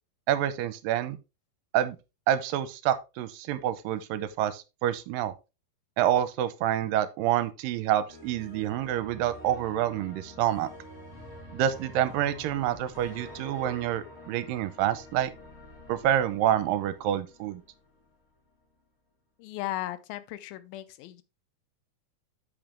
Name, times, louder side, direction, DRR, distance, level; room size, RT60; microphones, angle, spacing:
voice 1, 0.3-1.2 1.7-2.0 2.3-5.3 6.0-10.7 11.5-15.3 15.9-17.6, right 11 dB, 85° right, 2.3 m, -27 dB
sound 1, 8.1-18.1, left 1 dB, 25° left, 1.6 m, -47 dB
voice 2, 19.4-21.2, left 14 dB, 90° left, 2.4 m, -36 dB
8.9 x 5.7 x 3.3 m
omnidirectional pair, 4.1 m